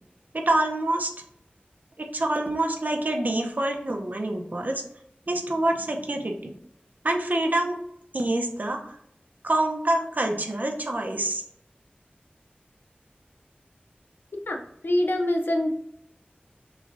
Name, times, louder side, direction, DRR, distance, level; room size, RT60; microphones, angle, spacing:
voice 1, 0.3-1.1 2.0-4.8 5.3-6.5 7.0-7.8 8.1-9.0 9.4-11.4, right 1 dB, 55° right, 3 dB, 0.7 m, -26 dB
voice 2, 14.8-15.7, left 1 dB, 75° left, 3 dB, 0.6 m, -24 dB
6.2 x 2.4 x 2.6 m, 0.75 s
wide cardioid pair, 55°, 4 cm